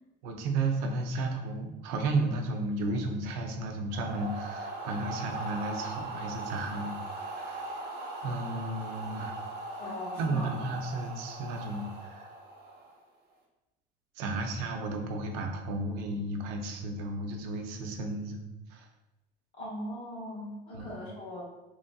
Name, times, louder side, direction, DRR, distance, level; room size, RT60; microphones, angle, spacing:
voice 1, 0.2-7.6 8.2-9.4 9.9-12.3 14.2-18.4 18.7-18.9 20.7-20.9, right 2 dB, 85° right, 3 dB, 0.5 m, -33 dB
sound 1, 3.9-13.0, right 2 dB, 50° right, 0.9 m, -40 dB
voice 2, 9.8-10.5 19.5-21.4, left 1 dB, 65° left, -6 dB, 1.5 m, -39 dB
3.0 x 2.6 x 2.2 m, 0.99 s
cardioid pair, 120°, 21 cm